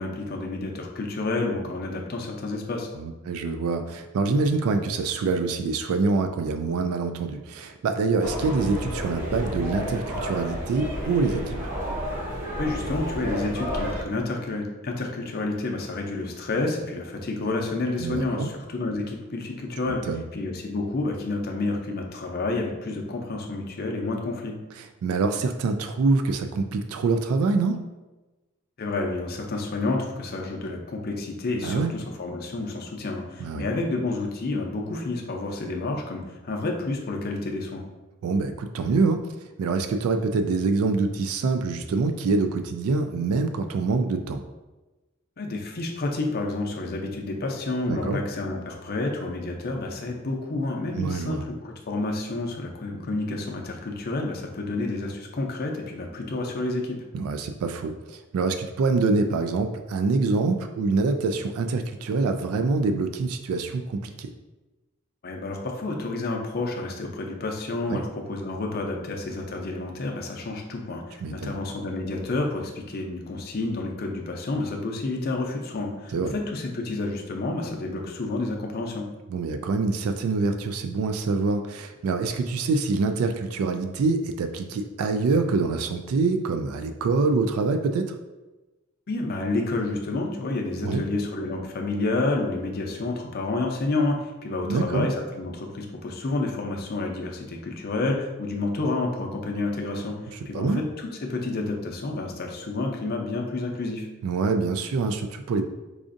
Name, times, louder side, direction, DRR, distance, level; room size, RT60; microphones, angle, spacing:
voice 1, 0.0-2.9 12.6-20.0 20.3-24.5 28.8-37.8 45.4-57.0 65.2-79.1 89.1-104.1, left 2 dB, 45° left, 1 dB, 0.5 m, -29 dB
voice 2, 2.9-11.7 18.0-18.5 19.9-20.2 24.8-27.8 31.6-31.9 33.4-33.6 38.2-44.4 47.9-48.2 50.9-51.4 57.1-64.3 67.9-68.0 71.2-71.6 76.1-76.3 79.3-88.2 90.8-91.0 94.7-95.1 100.5-100.8 104.2-105.7, right 4 dB, 90° right, 8 dB, 0.3 m, -25 dB
sound 1, 8.2-14.0, equal, 40° right, 0.7 m, -31 dB
4.8 x 2.5 x 2.5 m, 1.1 s
head